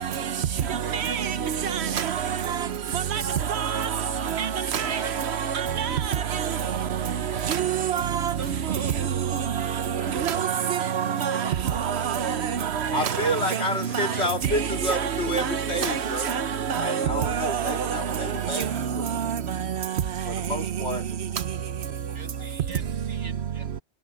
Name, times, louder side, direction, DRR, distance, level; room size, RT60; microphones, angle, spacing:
voice 1, 0.9-1.3 1.7-2.2 2.5-2.6 2.9-3.2 3.5-3.9 4.3-5.0 5.5-6.0 6.3-6.5 7.4-8.3 8.7-8.9 10.1-13.4 14.0-14.1 14.9-16.0 16.2-17.8 18.5-18.6 19.3-19.4, right 8 dB, 70° right, 1.1 m, -26 dB
voice 2, 4.6-5.1 5.4-5.9 6.3-6.6 7.3-7.9 8.4-8.7 9.6-10.2 11.0-12.1 12.8-12.9 14.1-14.3 17.6-17.8 22.1-23.8, right 3 dB, 85° right, 2.4 m, -44 dB
voice 3, 12.9-16.3 16.8-19.1 20.3-21.4 22.1-22.5, left 1 dB, 70° left, 3.1 m, -30 dB
omnidirectional pair, 1.2 m